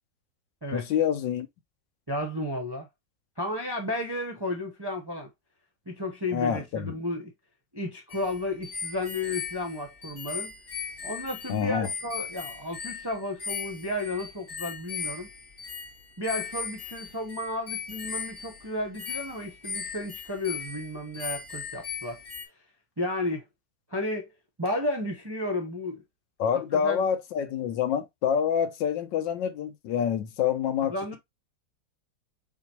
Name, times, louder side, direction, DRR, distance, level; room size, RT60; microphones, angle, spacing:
voice 1, 0.7-1.5 6.3-6.9 11.5-11.9 26.4-31.2, left 8 dB, 85° left, 1.5 m, -27 dB
voice 2, 2.1-2.9 3.4-5.3 5.9-7.3 7.7-10.5 11.0-15.3 16.2-22.2 23.0-23.4 23.9-24.3 24.6-26.0 26.7-27.1 30.9-31.2, left 1 dB, 30° right, 0.4 m, -33 dB
sound 1, 8.1-22.5, left 6 dB, 50° left, 1.5 m, -38 dB
5.0 x 3.7 x 2.8 m
omnidirectional pair, 1.9 m